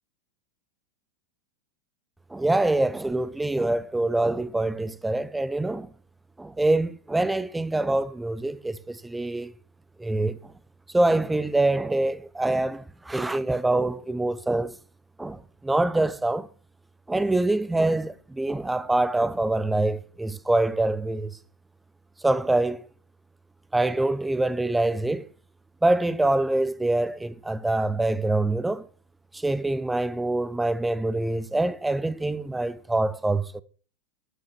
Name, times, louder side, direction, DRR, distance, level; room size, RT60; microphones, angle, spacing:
voice 1, 2.3-5.9 6.4-9.5 10.0-10.5 10.9-14.8 15.2-16.5 17.1-21.4 22.2-22.9 23.7-25.3 25.8-28.9 29.3-33.6, right 2 dB, 5° right, 0.7 m, -25 dB
13.0 x 6.6 x 5.8 m
figure-of-eight pair, 90°, 0 cm